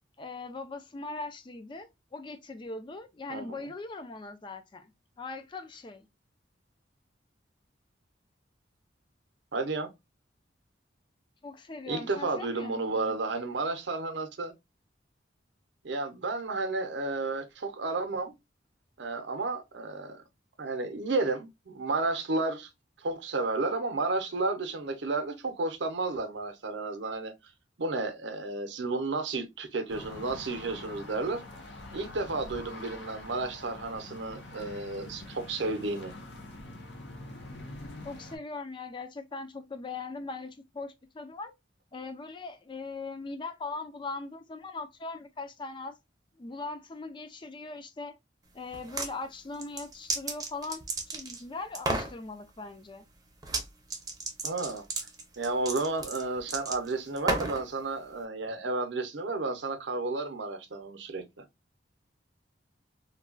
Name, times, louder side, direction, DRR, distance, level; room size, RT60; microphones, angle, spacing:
voice 1, 0.2-4.9 5.2-6.1 11.4-13.2 38.0-41.5 41.9-46.0 46.4-48.2 48.5-50.8 51.1-53.1, left 3 dB, 25° left, 0.4 m, -40 dB
voice 2, 3.3-3.7 9.5-9.9 11.9-14.5 15.8-18.4 19.0-20.2 20.6-22.7 23.0-27.3 27.8-31.4 31.9-36.1 54.4-54.8 55.4-61.4, right 3 dB, 70° right, 0.6 m, -32 dB
sound 1, 29.9-38.4, left 2 dB, 70° left, 0.8 m, -45 dB
sound 2, 48.7-49.1 49.5-51.4 51.7-52.1 53.4-53.6 53.9-57.6, right 3 dB, 20° right, 0.6 m, -32 dB
3.2 x 2.2 x 2.4 m
head